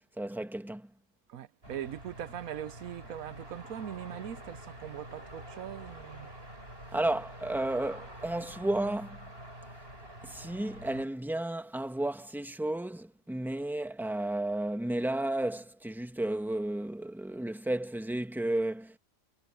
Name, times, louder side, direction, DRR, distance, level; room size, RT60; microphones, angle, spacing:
voice 1, 0.2-0.9 6.9-9.2 10.2-19.0, right 1 dB, ahead, 1.6 m, -33 dB
voice 2, 1.3-6.3, right 10 dB, 85° right, 1.2 m, -41 dB
sound 1, 1.6-11.1, right 1 dB, 45° right, 8.5 m, -47 dB
omnidirectional pair, 1.4 m